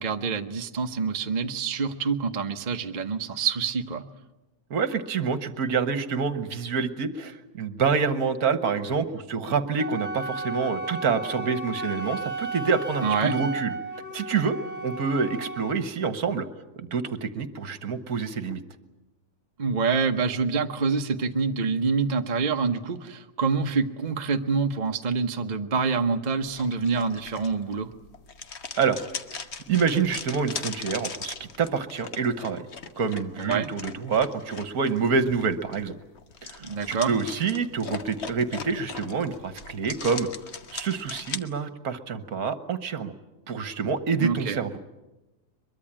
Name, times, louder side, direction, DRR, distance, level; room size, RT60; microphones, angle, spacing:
voice 1, 0.0-4.0 13.0-13.4 19.6-27.9 33.5-33.7 36.6-37.1 44.2-44.6, right 5 dB, 35° right, 5 dB, 0.8 m, -26 dB
voice 2, 4.7-13.8 14.1-14.6 14.8-16.5 16.8-18.6 28.7-29.0 29.7-32.7 33.0-36.0 36.4-40.3 40.7-43.1 43.5-44.8, right 5 dB, 55° right, 11 dB, 1.5 m, -27 dB
Wind instrument woodwind instrument, 9.8-15.8, right 2 dB, 15° left, 0.6 m, -34 dB
sound 1, 26.5-41.4, left 5 dB, 45° left, 1.2 m, -39 dB
23.0 x 22.5 x 8.8 m, 1.0 s
omnidirectional pair, 2.0 m